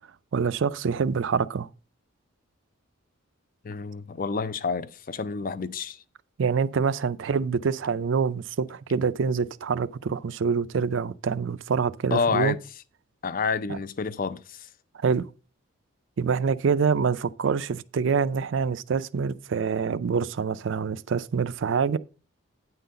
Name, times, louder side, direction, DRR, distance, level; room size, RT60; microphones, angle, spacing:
voice 1, 0.3-1.7 6.4-12.6 13.7-13.8 15.0-15.3 16.2-22.0, right 5 dB, 60° right, 0.4 m, -26 dB
voice 2, 3.6-6.0 12.1-12.6 13.2-14.6, left 5 dB, 40° left, 0.4 m, -28 dB
9.4 x 3.9 x 6.7 m
head